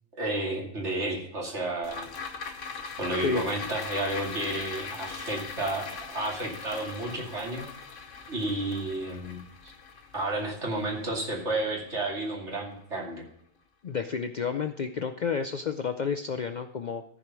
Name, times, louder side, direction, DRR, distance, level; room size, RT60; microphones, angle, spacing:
voice 1, 0.1-2.1 3.0-7.7 8.3-9.4 10.1-13.2, right 2 dB, 70° right, -1 dB, 2.9 m, -31 dB
sound 1, 1.8-12.3 12.7-12.8, left 5 dB, 85° left, 1.4 m, -40 dB
voice 2, 13.8-17.0, left 6 dB, 55° left, 8 dB, 0.5 m, -30 dB
14.0 x 5.0 x 6.0 m, 0.70 s
omnidirectional pair, 1.3 m